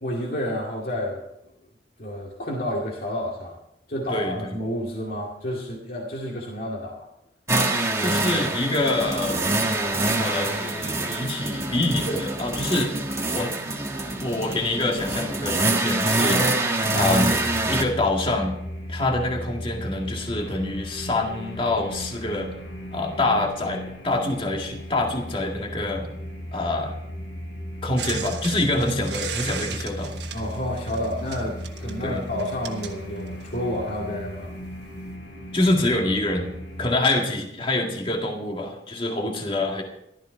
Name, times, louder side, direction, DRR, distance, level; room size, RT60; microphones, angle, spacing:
voice 1, 0.0-1.2 2.0-3.6 3.9-7.1 30.3-34.5, left 1 dB, 50° left, -3 dB, 2.3 m, -30 dB
sound 1, 7.5-17.8, right 2 dB, 15° right, 1.5 m, -25 dB
voice 2, 8.0-9.4 10.1-12.9 13.3-13.6 14.2-17.3 17.7-18.6 18.9-22.5 22.9-26.1 26.5-26.9 27.8-30.1 32.0-32.2 35.5-36.5 36.8-39.8, left 2 dB, 30° left, 1 dB, 2.0 m, -26 dB
sound 2, 16.9-36.9, equal, 75° left, 4.5 m, -36 dB
sound 3, 28.0-33.7 34.6-34.7, right 8 dB, 70° right, 1.5 m, -36 dB
14.5 x 13.0 x 4.6 m, 0.80 s
head